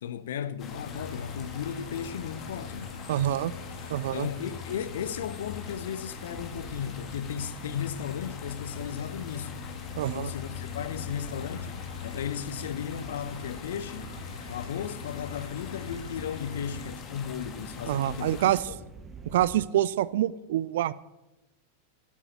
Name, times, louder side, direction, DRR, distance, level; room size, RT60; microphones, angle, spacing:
voice 1, 0.0-3.0 4.1-9.6 10.0-14.2 14.5-18.8, left 8 dB, 60° left, 0.9 m, -35 dB
sound 1, 0.6-18.6, left 5 dB, 30° left, 2.4 m, -44 dB
sound 2, 0.8-16.9, left 6 dB, 75° left, 1.5 m, -42 dB
voice 2, 3.1-3.5 3.9-4.3 10.0-10.3 17.9-18.6 19.3-20.9, right 12 dB, 55° right, 0.5 m, -26 dB
sound 3, 6.3-19.7, right 4 dB, 15° right, 1.1 m, -50 dB
12.0 x 10.0 x 9.0 m
figure-of-eight pair, 90°, 0 cm